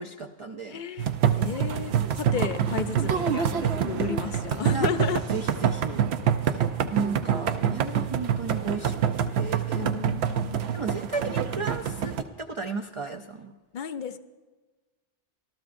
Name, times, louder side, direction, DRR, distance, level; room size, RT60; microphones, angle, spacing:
voice 1, 0.0-1.1 4.6-4.9 5.3-6.0 6.4-6.6 6.9-9.9 10.7-13.5, right 4 dB, 40° right, 4 dB, 0.5 m, -34 dB
voice 2, 0.7-5.2 9.7-10.7 13.7-14.2, left 7 dB, 55° left, 10 dB, 0.6 m, -33 dB
sound 1, 1.0-12.2, right 8 dB, 75° right, 0.9 m, -26 dB
25.0 x 13.5 x 2.6 m, 1.3 s
omnidirectional pair, 1.1 m